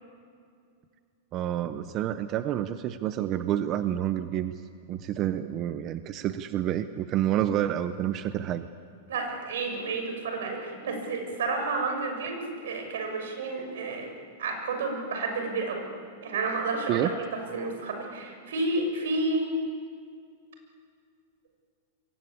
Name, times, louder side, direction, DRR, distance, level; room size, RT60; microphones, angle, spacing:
voice 1, 1.3-4.6 4.9-8.7 16.9-17.1, right 11 dB, 25° right, 11 dB, 0.6 m, -28 dB
voice 2, 9.1-14.1 14.4-15.8 16.2-19.5, right 3 dB, 80° right, 4 dB, 6.6 m, -31 dB
28.0 x 22.5 x 8.6 m, 2.3 s
supercardioid pair, 180°, 0 cm